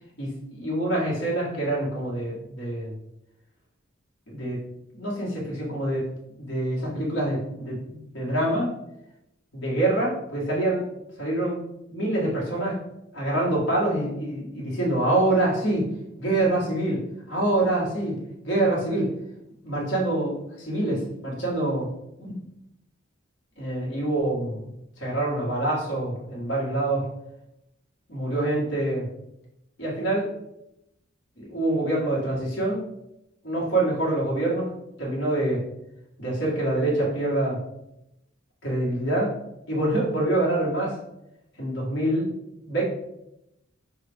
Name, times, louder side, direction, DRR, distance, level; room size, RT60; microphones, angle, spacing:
voice 1, 0.2-2.9 4.3-4.6 4.9-6.1 6.4-8.7 9.5-10.9 11.2-11.6 11.9-12.8 13.1-15.9 16.2-18.2 18.4-19.1 19.6-21.9 22.2-22.3 23.6-24.7 25.0-27.1 28.1-29.1 29.8-30.3 31.4-32.8 33.4-34.7 35.0-35.6 36.2-37.6 38.6-39.4 39.7-41.0 41.6-42.3 42.6-42.8, right 1 dB, 60° left, -4 dB, 1.6 m, -26 dB
5.7 x 2.4 x 3.5 m, 0.85 s
head